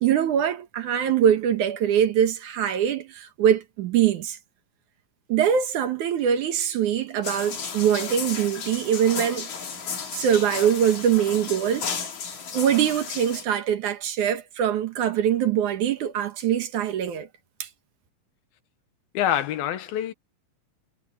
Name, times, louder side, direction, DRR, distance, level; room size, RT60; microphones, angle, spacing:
voice 1, 0.0-4.4 5.3-9.5 10.1-11.9 12.5-17.3 17.6-17.7, right 9 dB, 65° right, 2.6 m, -23 dB
sound 1, 7.2-13.4, left 6 dB, 55° left, 4.2 m, -34 dB
voice 2, 19.1-20.1, left 10 dB, 90° left, 3.3 m, -25 dB
omnidirectional pair, 4.1 m